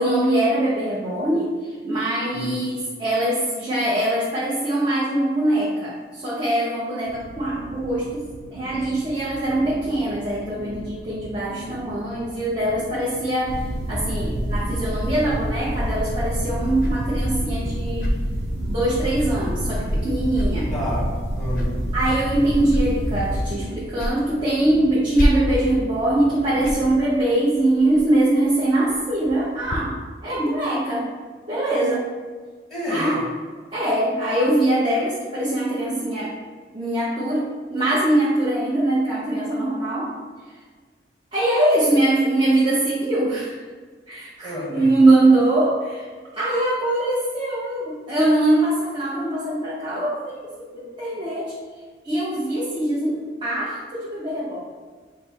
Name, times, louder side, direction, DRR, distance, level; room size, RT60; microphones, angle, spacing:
voice 1, 0.0-8.3 8.5-13.6 13.9-18.1 18.7-20.7 21.9-30.0 30.2-31.1 31.5-32.1 32.9-33.2 33.7-36.3 36.7-40.2 41.3-43.6 44.1-46.1 46.3-51.5 52.0-54.6, right 1 dB, 25° right, -8 dB, 0.7 m, -22 dB
sound 1, 7.1-27.1, right 2 dB, 85° right, 0.4 m, -39 dB
sound 2, 13.5-23.5, equal, 65° right, 0.7 m, -27 dB
sound 3, 15.7-29.8, equal, 50° left, 0.5 m, -31 dB
voice 2, 20.7-21.7 32.7-33.3 44.4-44.9, left 1 dB, ahead, -6 dB, 1.1 m, -29 dB
5.2 x 2.0 x 4.2 m, 1.5 s
head